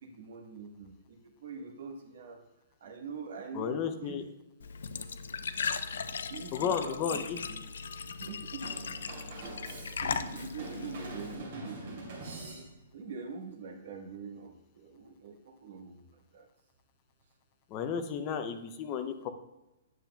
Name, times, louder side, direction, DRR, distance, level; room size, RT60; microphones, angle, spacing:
voice 1, 0.0-2.4 2.8-4.2 6.3-7.6 8.1-8.7 10.0-12.7 12.9-16.0 16.3-16.5, right 4 dB, 55° right, 3 dB, 1.2 m, -44 dB
voice 2, 3.5-4.2 6.5-7.4 17.7-19.3, left 7 dB, 20° left, 7 dB, 0.5 m, -33 dB
Glass / Trickle dribble / Fill (with liquid), 4.6-11.4, left 5 dB, 85° left, 0.4 m, -38 dB
Drum kit / Drum, 8.6-13.0, right 2 dB, 35° right, 2.8 m, -44 dB
9.4 x 7.3 x 2.2 m, 0.96 s
hypercardioid pair, 180°, 0 cm